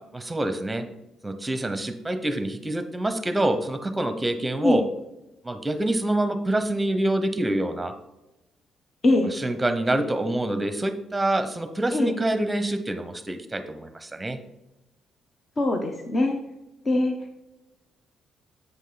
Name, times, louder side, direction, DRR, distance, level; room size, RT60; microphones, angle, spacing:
voice 1, 0.1-0.9 1.2-4.8 5.4-7.9 9.4-14.4, right 1 dB, 15° right, 9 dB, 1.0 m, -26 dB
voice 2, 9.0-9.3 11.9-12.2 15.6-16.4 16.8-17.4, left 2 dB, 35° left, 4 dB, 1.0 m, -23 dB
8.3 x 5.3 x 3.9 m, 0.93 s
cardioid pair, 90°, 0 cm